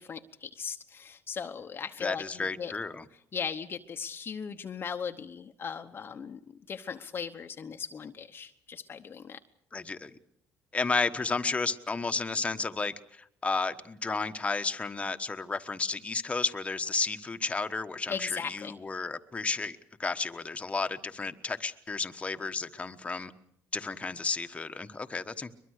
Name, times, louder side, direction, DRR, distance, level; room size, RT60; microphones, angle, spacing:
voice 1, 0.0-2.7 3.3-6.4 6.7-9.4 18.1-18.7, left 6 dB, 40° left, 6 dB, 1.0 m, -38 dB
voice 2, 2.0-3.0 9.7-10.2 10.7-23.3 23.7-25.5, left 4 dB, 20° left, 8 dB, 1.3 m, -32 dB
23.0 x 22.0 x 6.5 m, 0.71 s
cardioid pair, 95°, 6 cm